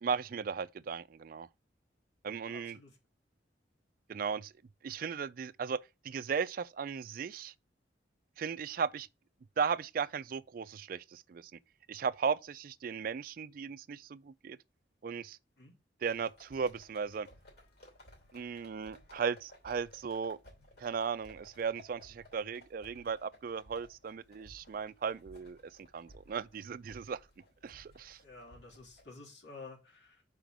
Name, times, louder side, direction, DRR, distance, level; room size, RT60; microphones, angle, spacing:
voice 1, 0.0-1.5 2.2-2.8 4.1-4.5 4.8-7.5 8.4-9.1 9.6-11.5 11.9-14.6 15.0-15.4 16.0-17.3 18.3-20.4 20.8-27.2 27.6-28.2, right 6 dB, 50° right, 0.3 m, -36 dB
voice 2, 2.5-3.0 15.6-15.8 28.2-30.2, left 3 dB, 75° left, 3.2 m, -51 dB
sound 1, 16.1-29.1, left 1 dB, 60° left, 2.7 m, -59 dB
5.1 x 5.0 x 6.0 m
head